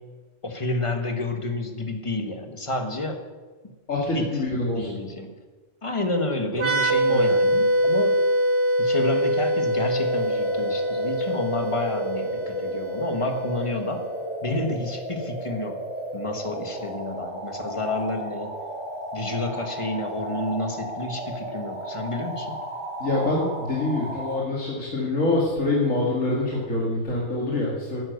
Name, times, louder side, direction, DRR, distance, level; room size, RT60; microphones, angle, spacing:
voice 1, 0.4-3.2 4.1-4.3 4.8-5.3 5.8-8.2 8.8-14.1 14.4-15.9 16.1-18.5 19.1-22.6, left 2 dB, 25° left, 5 dB, 1.5 m, -29 dB
voice 2, 3.9-5.0 7.1-7.3 23.0-28.0, left 2 dB, 90° left, -4 dB, 2.7 m, -25 dB
sound 1, 6.5-14.0, equal, 60° right, 2.0 m, -24 dB
sound 2, 9.7-24.4, right 1 dB, 5° right, 3.5 m, -34 dB
11.0 x 10.0 x 8.0 m, 1.3 s
omnidirectional pair, 1.3 m